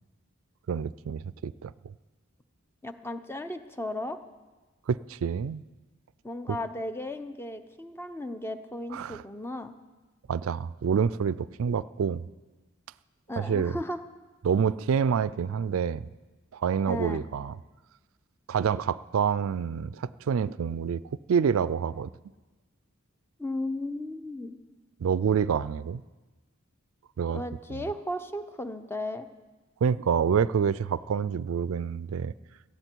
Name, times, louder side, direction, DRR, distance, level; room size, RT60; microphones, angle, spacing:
voice 1, 0.7-1.7 4.9-5.6 6.5-6.6 8.9-9.2 10.3-12.3 13.4-13.7 14.4-16.1 16.5-17.5 18.5-21.0 21.3-22.1 25.0-26.0 27.2-27.4 27.7-27.9 29.8-32.3, right 7 dB, 85° right, 18 dB, 0.4 m, -27 dB
voice 2, 2.8-4.2 6.2-9.7 13.3-14.0 16.8-17.2 23.4-24.6 27.3-29.3, left 1 dB, 10° left, 9 dB, 0.7 m, -35 dB
17.5 x 13.0 x 4.6 m, 1.2 s
head